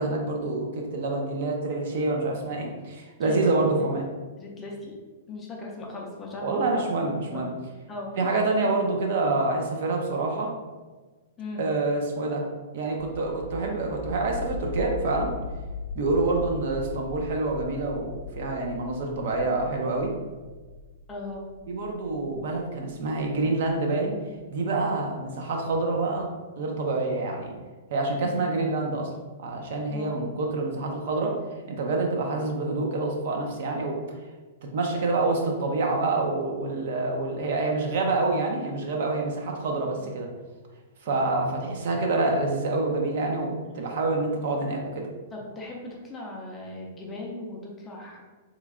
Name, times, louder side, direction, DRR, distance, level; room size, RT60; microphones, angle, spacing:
voice 1, 0.0-4.0 6.4-7.5 8.2-10.5 11.6-12.4 12.7-15.3 15.9-20.1 21.7-24.2 24.5-26.3 26.6-27.5 27.9-29.1 29.4-31.4 31.7-34.0 34.7-40.3 41.0-45.1, right 3 dB, 55° right, 1 dB, 0.6 m, -27 dB
voice 2, 4.4-5.0 5.3-6.9 7.3-7.4 7.9-8.3 11.4-11.7 21.1-21.5 28.2-28.5 29.9-30.2 39.9-40.0 41.1-41.3 45.3-48.2, left 2 dB, 15° left, -2 dB, 0.5 m, -38 dB
sound 1, 13.0-23.7, left 3 dB, 85° left, 0.3 m, -39 dB
3.1 x 2.3 x 3.6 m, 1.3 s
hypercardioid pair, 165°, 0 cm